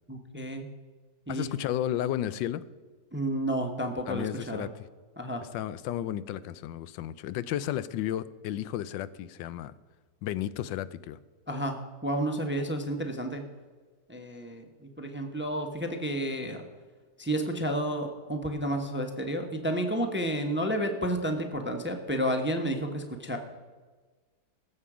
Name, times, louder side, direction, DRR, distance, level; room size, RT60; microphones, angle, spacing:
voice 1, 0.1-0.7 1.3-1.5 3.1-4.7 5.2-5.4 11.5-11.8 12.0-13.4 14.1-16.6 17.2-23.4, right 1 dB, 10° right, 0.7 m, -31 dB
voice 2, 1.3-2.6 4.1-4.7 5.5-9.7 10.2-11.2, left 12 dB, 85° left, 1.3 m, -33 dB
19.0 x 7.8 x 4.9 m
omnidirectional pair, 1.9 m